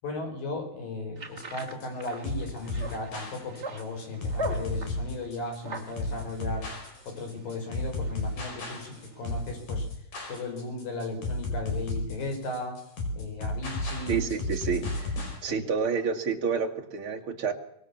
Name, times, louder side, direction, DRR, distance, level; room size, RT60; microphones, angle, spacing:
voice 1, 0.0-6.7 7.1-9.9 10.3-12.8 13.1-14.2 15.5-15.7, left 2 dB, 80° left, 4 dB, 7.2 m, -36 dB
sound 1, 1.2-9.4, right 1 dB, 20° right, 2.8 m, -42 dB
sound 2, 1.4-15.4, left 2 dB, 60° left, 6.6 m, -33 dB
voice 2, 14.1-15.1 15.4-17.5, right 6 dB, 40° right, 2 dB, 2.8 m, -29 dB
25.0 x 21.5 x 7.2 m, 0.73 s
omnidirectional pair, 3.9 m